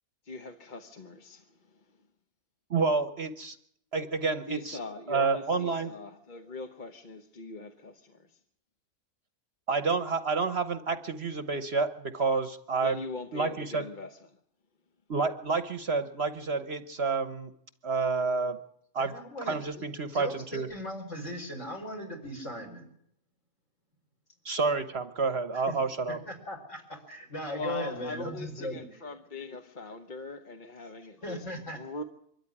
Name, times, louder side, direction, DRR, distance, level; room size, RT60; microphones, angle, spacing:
voice 1, 0.2-1.8 4.5-8.4 12.8-14.3 27.5-32.0, left 3 dB, 35° left, 1.1 m, -41 dB
voice 2, 2.7-3.6 3.9-4.8 5.1-5.9 9.7-13.0 13.3-13.8 15.1-17.5 17.8-18.6 18.9-19.1 19.4-20.7 24.4-26.2, right 4 dB, 50° right, 1.2 m, -29 dB
voice 3, 19.0-19.9 20.1-22.9 25.5-25.7 26.3-28.8 31.2-31.8, equal, 55° left, 5.2 m, -38 dB
24.0 x 13.5 x 9.9 m
omnidirectional pair, 1.5 m